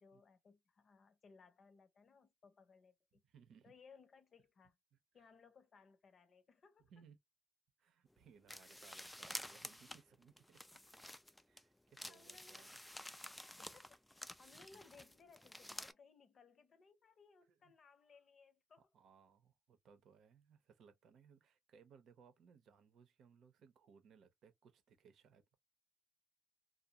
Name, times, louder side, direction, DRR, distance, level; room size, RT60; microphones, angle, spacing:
voice 1, 0.0-3.2 3.6-4.8 5.1-6.9 12.1-12.9 13.6-18.9, left 5 dB, 50° left, 0.7 m, -65 dB
voice 2, 3.3-3.7 5.2-5.3 6.9-7.2 7.8-10.6 11.5-12.8 17.5-17.6 18.9-25.5, right 6 dB, 70° right, 0.7 m, -65 dB
sound 1, 8.5-11.6 12.0-15.9, left 1 dB, 5° left, 0.3 m, -51 dB
2.5 x 2.0 x 2.8 m
cardioid pair, 90°, 0 cm